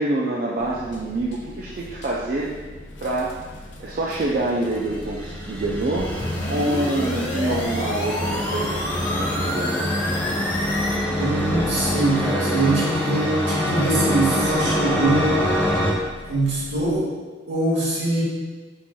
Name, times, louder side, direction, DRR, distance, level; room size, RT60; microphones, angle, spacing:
voice 1, 0.0-2.5 3.0-3.4 3.8-9.9, right 2 dB, 50° right, -4 dB, 0.4 m, -26 dB
sound 1, 0.6-17.0, left 1 dB, 90° left, 0.6 m, -40 dB
sound 2, 4.4-15.9, left 1 dB, 10° left, 0.5 m, -25 dB
sound 3, 6.0-11.0, left 1 dB, 45° left, 0.7 m, -30 dB
voice 2, 11.2-15.3 16.3-17.1 17.5-18.2, right 2 dB, 75° right, -6 dB, 1.4 m, -23 dB
4.5 x 4.2 x 2.2 m, 1.3 s
head